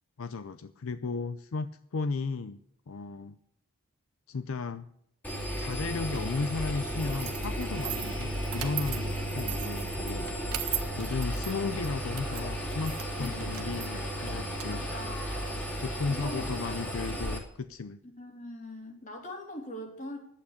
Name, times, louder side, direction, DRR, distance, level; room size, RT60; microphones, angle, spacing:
voice 1, 0.2-2.6 2.9-3.4 4.3-4.9 5.6-10.3 11.0-14.8 15.8-18.0, left 4 dB, 70° left, 12 dB, 0.5 m, -35 dB
Engine, 5.2-17.4, equal, 5° left, 2.6 m, -34 dB
sound 1, 7.0-15.8, right 13 dB, 85° right, 1.4 m, -40 dB
voice 2, 13.2-13.7 14.6-15.6 16.1-16.9 18.2-20.2, left 1 dB, 35° left, 1 dB, 3.4 m, -42 dB
11.5 x 8.8 x 8.2 m, 0.74 s
head